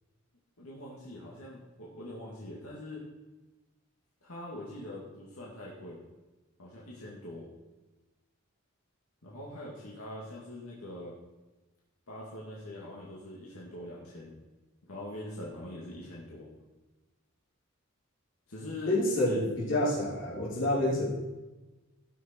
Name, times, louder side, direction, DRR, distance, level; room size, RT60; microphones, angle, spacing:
voice 1, 0.6-3.0 4.2-6.0 6.6-7.5 9.2-11.1 12.1-14.3 14.9-16.5 18.5-19.0 19.2-19.4, left 1 dB, 85° left, -5 dB, 2.3 m, -43 dB
voice 2, 18.9-21.1, left 1 dB, 60° left, -7 dB, 4.3 m, -28 dB
17.0 x 6.4 x 4.5 m, 1.1 s
head